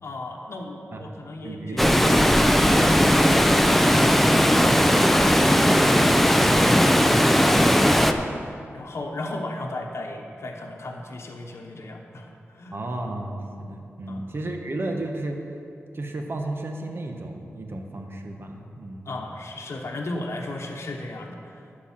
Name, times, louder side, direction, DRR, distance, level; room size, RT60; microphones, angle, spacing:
voice 1, 0.0-3.6 4.0-12.8 14.1-14.3 19.0-21.6, left 1 dB, 70° left, 0 dB, 1.0 m, -35 dB
voice 2, 1.4-2.3 4.5-5.0 12.7-15.4 15.9-19.1, right 2 dB, 55° right, 3 dB, 1.2 m, -33 dB
Water, 1.8-8.1, equal, 5° left, 0.5 m, -18 dB
11.5 x 4.6 x 7.4 m, 2.6 s
wide cardioid pair, 75°, 5 cm